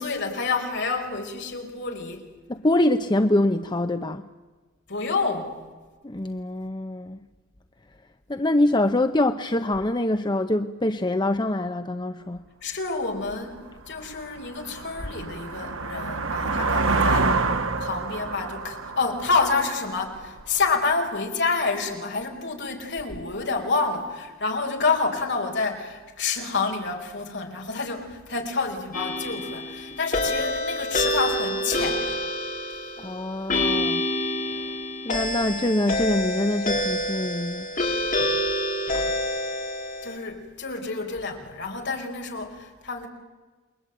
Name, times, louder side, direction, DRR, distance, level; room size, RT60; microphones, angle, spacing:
voice 1, 0.0-2.3 4.9-5.5 12.6-17.4 17.8-32.2 40.0-43.1, left 4 dB, 55° left, 4.8 m, -28 dB
voice 2, 2.5-4.2 6.0-7.2 8.3-12.4 33.0-34.0 34.5-34.6 35.0-37.7, left 1 dB, 20° left, 0.8 m, -24 dB
sound 1, 13.3-13.4 13.9-20.5, right 3 dB, 70° right, 1.5 m, -27 dB
sound 2, 28.9-40.2, left 1 dB, 40° left, 4.0 m, -27 dB
28.5 x 22.5 x 9.2 m
head